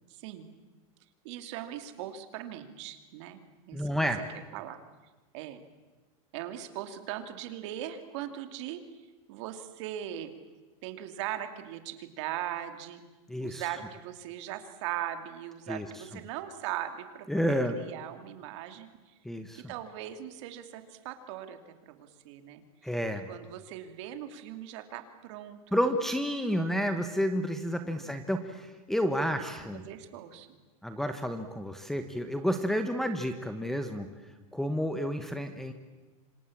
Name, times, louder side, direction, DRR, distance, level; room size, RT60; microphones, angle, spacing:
voice 1, 0.1-0.5 1.2-3.4 3.7-4.1 4.5-4.8 5.3-5.6 6.3-8.8 9.3-10.3 10.8-13.0 13.4-17.4 17.7-19.1 19.5-22.6 23.3-25.8 27.4-28.1 29.1-30.5, right 12 dB, 50° right, 8 dB, 2.8 m, -40 dB
voice 2, 3.7-4.2 13.3-13.6 15.7-15.9 17.3-17.8 19.2-19.6 22.8-23.3 25.7-29.8 30.8-34.1 34.5-35.7, equal, ahead, 8 dB, 1.0 m, -30 dB
27.5 x 26.5 x 7.4 m, 1.2 s
supercardioid pair, 170°, 19 cm